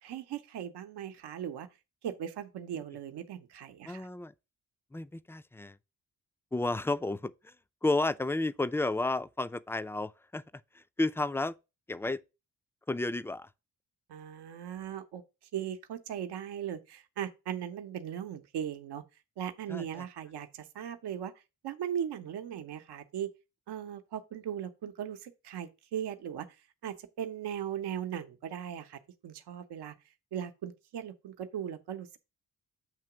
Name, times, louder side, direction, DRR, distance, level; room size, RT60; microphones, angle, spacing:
voice 1, 0.0-1.7 2.0-4.1 14.1-15.2 15.5-19.0 19.4-21.3 21.6-23.3 23.7-26.5 26.8-29.9 30.3-32.2, right 9 dB, 80° right, 0.8 m, -38 dB
voice 2, 3.9-4.3 4.9-5.8 6.5-7.5 7.8-11.6 11.9-12.2 12.9-13.5 19.7-20.0, left 2 dB, 5° left, 0.4 m, -32 dB
7.4 x 3.0 x 5.7 m
supercardioid pair, 50°, 39 cm